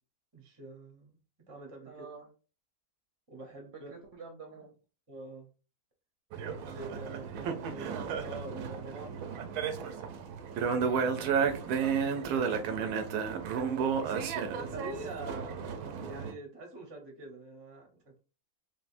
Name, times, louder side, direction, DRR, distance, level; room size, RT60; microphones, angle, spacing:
voice 1, 0.3-1.2 1.5-2.1 3.3-3.9 5.1-5.5 6.5-9.2 11.0-11.3 12.4-13.0 13.6-14.2 14.6-15.5 16.0-18.2, right 2 dB, 25° right, 3 dB, 0.6 m, -45 dB
voice 2, 1.9-2.3 3.7-4.8 11.0-12.1 12.6-13.2 15.3-15.4, right 3 dB, 60° right, 2 dB, 0.8 m, -48 dB
sound 1, 6.3-16.3, right 6 dB, 85° right, 1.1 m, -33 dB
3.3 x 2.5 x 2.5 m, 0.35 s
omnidirectional pair, 1.6 m